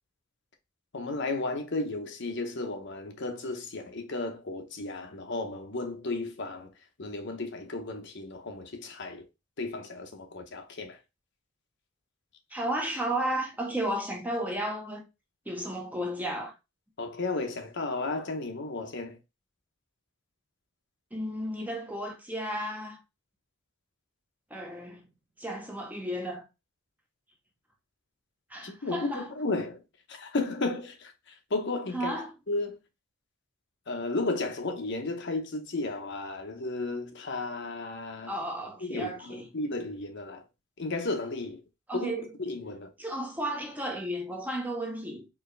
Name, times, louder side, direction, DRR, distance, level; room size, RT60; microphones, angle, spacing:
voice 1, 0.9-6.7 7.0-9.3 9.6-11.0 17.0-19.2 28.6-29.8 30.1-32.1 32.5-32.8 33.9-38.4 38.8-40.5 40.8-41.6 41.9-42.1 42.4-42.9, left 2 dB, 55° left, 0.8 m, -34 dB
voice 2, 12.5-15.0 15.5-16.5 21.1-23.0 24.5-25.1 25.4-26.4 28.5-29.3 31.9-32.3 38.3-39.4 41.9-42.3 43.0-45.3, right 1 dB, 10° right, 0.7 m, -33 dB
4.6 x 2.8 x 3.2 m
head